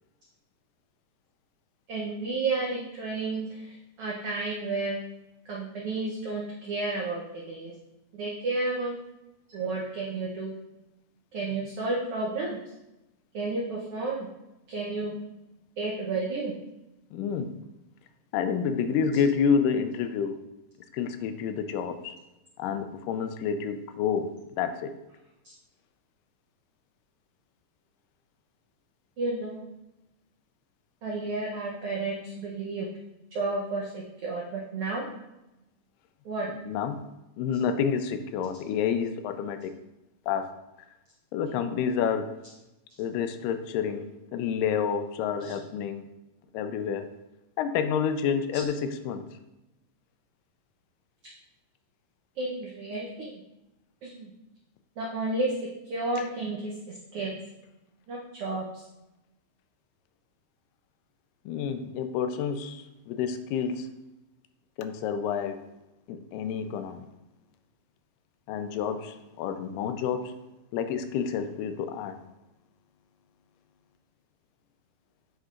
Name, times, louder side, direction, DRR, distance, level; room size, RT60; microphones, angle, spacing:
voice 1, 1.9-5.0 5.4-7.2 7.5-7.7 8.1-8.9 9.5-10.5 11.3-12.6 13.3-14.3 14.7-15.1 15.8-16.5 29.2-29.7 31.0-32.9 33.3-35.1 36.2-36.5 45.4-45.5 52.4-53.4 54.0-54.3 55.0-55.5 55.9-57.4 58.1-58.8, right 3 dB, 90° right, -3 dB, 1.2 m, -31 dB
voice 2, 17.1-17.5 18.3-20.4 20.9-22.2 22.6-24.9 36.5-37.0 37.4-39.7 40.3-40.5 41.3-42.3 43.0-46.0 46.5-47.1 47.6-49.2 56.1-56.3 61.5-63.9 64.8-65.6 66.1-67.0 68.5-70.3 70.7-72.2, left 7 dB, 90° left, 9 dB, 2.2 m, -29 dB
7.8 x 5.5 x 2.5 m, 0.95 s
omnidirectional pair, 3.8 m